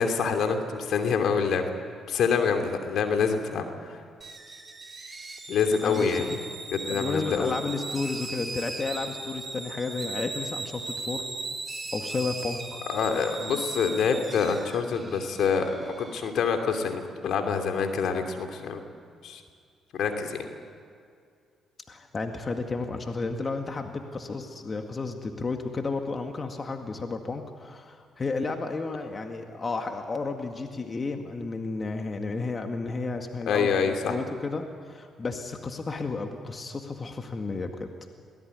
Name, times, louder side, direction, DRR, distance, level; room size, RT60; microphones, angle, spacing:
voice 1, 0.0-1.6 2.1-4.0 5.5-6.3 6.7-7.6 12.9-18.8 19.2-19.4 19.9-20.4 33.5-34.2, left 6 dB, 70° left, 5 dB, 2.8 m, -26 dB
sound 1, 4.2-16.5, right 3 dB, 30° right, 4.0 m, -38 dB
voice 2, 5.8-6.4 6.9-11.3 11.9-12.8 21.9-37.9, left 3 dB, 40° left, 4 dB, 2.0 m, -32 dB
23.0 x 18.0 x 9.6 m, 2.2 s
supercardioid pair, 65°, 0 cm